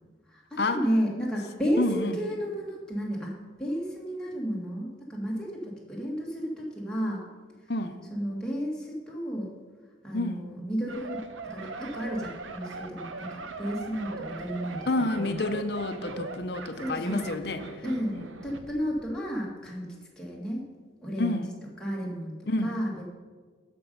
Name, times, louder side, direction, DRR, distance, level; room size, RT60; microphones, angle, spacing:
voice 1, 0.3-7.2 7.6-7.7 8.1-9.5 10.0-11.2 11.5-14.9 15.1-15.5 16.8-17.3 17.8-19.9 20.2-20.7 21.0-21.4 21.8-23.0, equal, 5° left, -4 dB, 1.8 m, -32 dB
voice 2, 1.8-2.2 7.7-8.0 10.1-10.4 14.9-17.6 18.1-18.2 21.2-21.5 22.5-22.7, left 2 dB, 55° left, 8 dB, 0.7 m, -29 dB
sound 1, 10.9-18.7 19.0-19.2, right 3 dB, 90° right, 0.8 m, -40 dB
13.0 x 5.4 x 5.4 m, 1.5 s
head